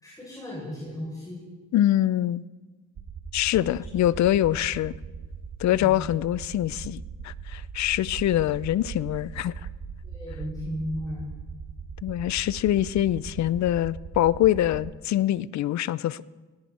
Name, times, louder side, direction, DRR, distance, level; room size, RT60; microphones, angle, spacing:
voice 1, 0.0-1.5 10.0-11.3, left 1 dB, 10° left, -6 dB, 6.7 m, -35 dB
voice 2, 1.7-2.4 3.3-4.9 5.6-9.5 12.0-16.2, left 13 dB, 65° left, 20 dB, 0.6 m, -24 dB
sound 1, 3.0-14.9, right 6 dB, 55° right, 1.6 m, -39 dB
18.5 x 17.0 x 4.3 m, 1.3 s
cardioid pair, 90°, 30 cm